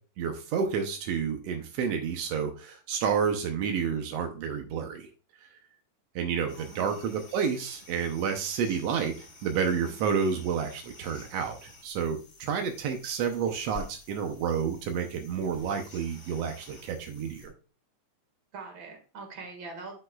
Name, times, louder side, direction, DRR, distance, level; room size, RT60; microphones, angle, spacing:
voice 1, 0.2-5.1 6.1-17.5, right 6 dB, 80° right, 5 dB, 1.4 m, -30 dB
sound 1, 6.5-17.5, left 3 dB, 35° left, 4.0 m, -51 dB
voice 2, 6.6-7.1 9.8-9.9 18.5-20.0, right 4 dB, 40° right, 3 dB, 2.2 m, -43 dB
11.5 x 5.5 x 2.3 m, 0.35 s
omnidirectional pair, 3.9 m